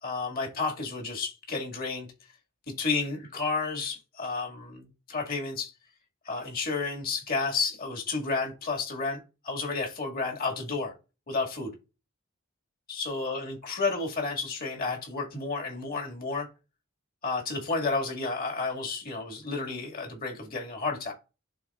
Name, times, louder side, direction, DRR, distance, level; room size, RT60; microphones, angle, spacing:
voice 1, 0.0-2.1 2.7-5.7 6.3-10.9 11.3-11.7 12.9-16.5 17.2-21.1, left 4 dB, 45° left, 2.1 m, -31 dB
11.5 x 3.8 x 2.4 m
head